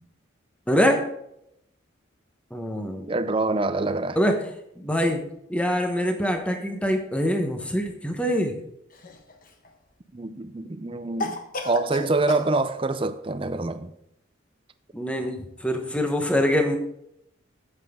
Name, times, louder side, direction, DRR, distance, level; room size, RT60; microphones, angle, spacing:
voice 1, 0.7-1.1 2.5-3.1 4.1-4.4 4.8-5.2 5.5-8.6 14.9-16.8, equal, 5° left, 1.0 m, -24 dB
voice 2, 3.1-4.2 10.1-11.4 11.6-13.9, right 2 dB, 25° right, 0.5 m, -25 dB
Cough, 8.9-9.7 11.2-12.5, left 2 dB, 45° left, 1.1 m, -32 dB
9.2 x 7.9 x 3.6 m
head